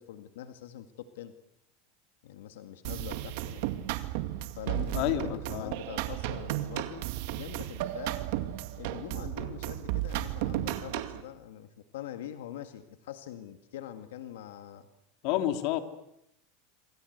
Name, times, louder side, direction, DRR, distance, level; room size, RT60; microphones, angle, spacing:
voice 1, 0.0-1.3 2.2-3.6 4.2-8.2 8.8-14.9, left 11 dB, 85° left, 8 dB, 2.0 m, -44 dB
sound 1, 2.8-11.2, right 14 dB, 65° right, 2.2 m, -34 dB
voice 2, 4.7-5.7 15.2-15.8, left 13 dB, 55° left, 7 dB, 2.9 m, -30 dB
26.5 x 26.5 x 8.1 m, 0.82 s
supercardioid pair, 150°, 0 cm